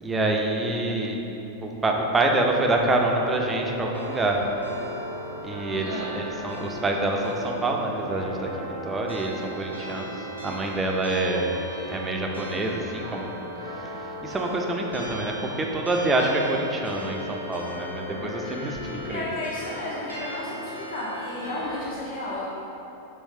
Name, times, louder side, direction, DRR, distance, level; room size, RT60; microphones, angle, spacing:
voice 1, 0.0-1.2 1.6-4.4 5.4-10.1 10.4-11.5 11.9-13.3 13.7-19.2, right 2 dB, 15° right, 1 dB, 0.4 m, -26 dB
sound 1, 3.0-21.8, equal, 90° right, 0.6 m, -37 dB
voice 2, 5.7-6.1 19.0-20.6 20.9-22.5, left 1 dB, 55° left, -8 dB, 0.6 m, -33 dB
3.1 x 3.1 x 3.2 m, 3.0 s
figure-of-eight pair, 90°, 0 cm